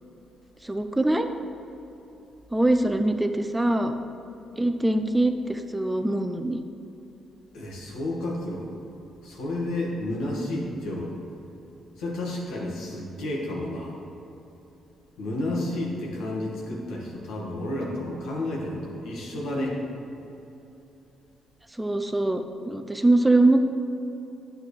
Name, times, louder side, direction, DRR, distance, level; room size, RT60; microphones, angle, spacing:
voice 1, 0.6-1.3 2.5-3.9 4.6-6.6 21.8-23.7, right 2 dB, 10° right, 7 dB, 0.5 m, -23 dB
voice 2, 7.5-8.7 9.2-11.2 12.0-14.0 15.2-19.8, left 1 dB, 80° left, -2 dB, 1.7 m, -31 dB
9.3 x 7.6 x 3.3 m, 3.0 s
cardioid pair, 90°, 0 cm